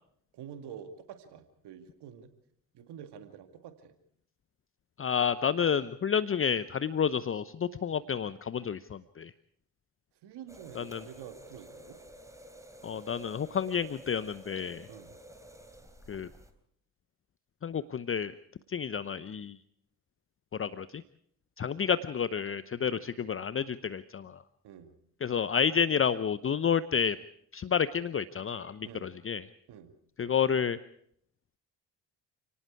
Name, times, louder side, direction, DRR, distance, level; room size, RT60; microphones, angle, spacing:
voice 1, 0.3-2.3 2.7-3.9 10.2-12.0 14.9-15.2 22.8-23.0 24.6-24.9 28.8-29.1 29.7-29.9, right 8 dB, 60° right, 7 dB, 2.4 m, -47 dB
voice 2, 5.0-9.3 10.8-11.0 12.8-14.9 16.1-16.3 17.6-18.3 18.7-19.5 20.6-21.0 21.6-24.4 25.2-27.2 27.5-29.4 30.2-30.8, left 7 dB, 30° left, 15 dB, 0.8 m, -30 dB
sound 1, 10.5-16.5, right 1 dB, 5° right, 3.8 m, -51 dB
29.5 x 18.5 x 4.8 m, 0.69 s
figure-of-eight pair, 45°, 45 cm